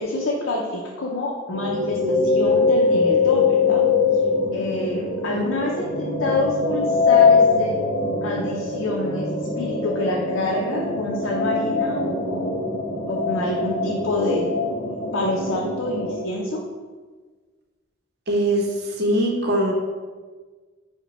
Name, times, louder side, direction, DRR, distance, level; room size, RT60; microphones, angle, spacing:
voice 1, 0.0-3.8 4.5-7.8 8.2-9.3 9.6-12.6 13.1-14.5 15.1-16.6, left 2 dB, 70° left, -3 dB, 0.5 m, -27 dB
sound 1, 1.5-16.1, left 4 dB, 35° left, 0.9 m, -22 dB
voice 2, 18.3-18.7 19.0-19.7, right 1 dB, 55° right, 0 dB, 0.7 m, -21 dB
5.7 x 2.2 x 4.0 m, 1.4 s
head